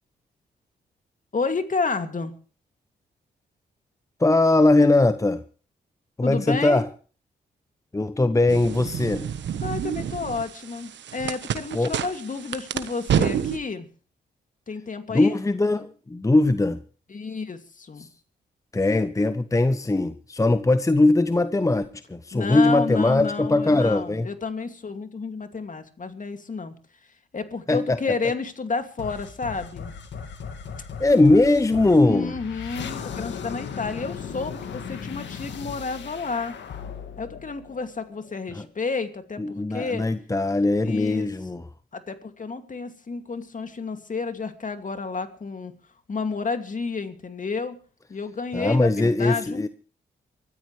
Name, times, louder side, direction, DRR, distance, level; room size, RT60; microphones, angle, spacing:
voice 1, 1.3-2.3 6.2-6.8 9.6-13.9 14.7-15.4 17.1-18.1 22.3-26.7 27.3-29.9 32.0-36.6 37.2-39.4 39.7-40.0 40.8-41.3 41.9-45.7 46.1-47.8 48.1-49.7, left 4 dB, 45° left, 2.5 m, -30 dB
voice 2, 4.2-5.4 6.2-6.9 7.9-9.3 11.7-11.9 15.1-16.8 18.0-18.1 18.7-24.3 27.7-28.0 31.0-32.3 38.5-38.7 39.4-41.7 48.5-49.7, left 2 dB, 15° left, 0.8 m, -20 dB
sound 1, 8.5-13.6, right 9 dB, 75° right, 1.3 m, -29 dB
sound 2, 29.0-38.3, left 6 dB, 75° left, 2.1 m, -37 dB
24.0 x 13.5 x 3.3 m
supercardioid pair, 50°, 19 cm